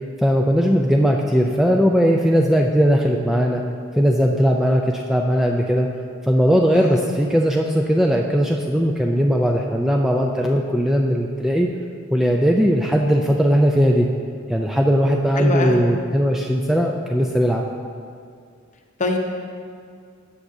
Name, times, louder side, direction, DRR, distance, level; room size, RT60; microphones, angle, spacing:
voice 1, 0.2-3.6 4.0-5.9 6.3-11.7 12.1-14.1 14.5-17.6, equal, ahead, 0 dB, 0.3 m, -18 dB
voice 2, 6.7-7.0 15.4-15.8 19.0-19.2, left 2 dB, 35° left, 3 dB, 0.7 m, -23 dB
13.0 x 7.1 x 2.7 m, 2.2 s
head